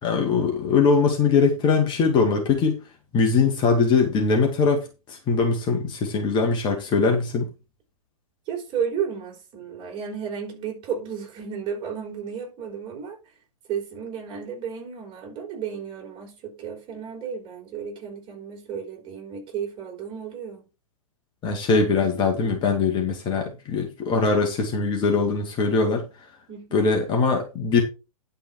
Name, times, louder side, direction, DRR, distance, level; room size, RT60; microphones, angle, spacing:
voice 1, 0.0-2.8 3.1-7.5 21.4-26.0 26.7-27.8, left 4 dB, 25° left, 2.3 m, -21 dB
voice 2, 8.5-13.2 13.7-20.7 26.5-26.9, right 7 dB, 25° right, 4.9 m, -33 dB
11.0 x 5.7 x 4.7 m
figure-of-eight pair, 110°, 19 cm